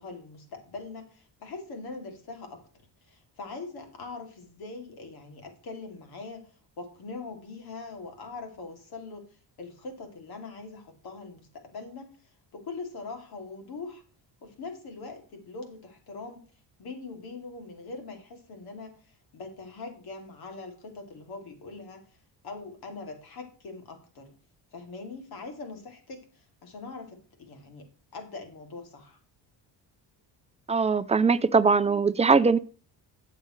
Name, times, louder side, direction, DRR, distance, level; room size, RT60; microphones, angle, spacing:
voice 1, 0.0-2.6 3.0-6.5 6.8-12.1 12.5-14.0 14.4-16.4 16.8-22.1 22.4-24.3 24.7-29.2, left 3 dB, 65° left, 4 dB, 2.8 m, -42 dB
voice 2, 30.7-32.6, right 4 dB, 15° right, 13 dB, 0.4 m, -21 dB
12.0 x 7.7 x 3.2 m, 0.39 s
cardioid pair, 115°, 41 cm